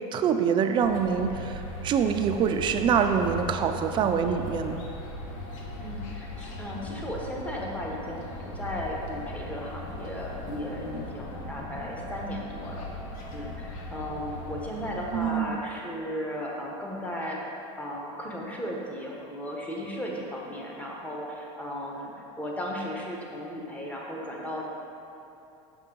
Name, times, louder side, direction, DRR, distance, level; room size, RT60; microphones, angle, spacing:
voice 1, 0.1-4.8 15.1-15.6, right 7 dB, 30° right, 6 dB, 0.4 m, -25 dB
sound 1, 0.8-15.3, left 1 dB, 80° left, 1.1 m, -39 dB
voice 2, 5.8-12.9 13.3-24.6, equal, 10° left, -2 dB, 0.9 m, -35 dB
6.1 x 5.5 x 3.8 m, 2.9 s
supercardioid pair, 130°, 17 cm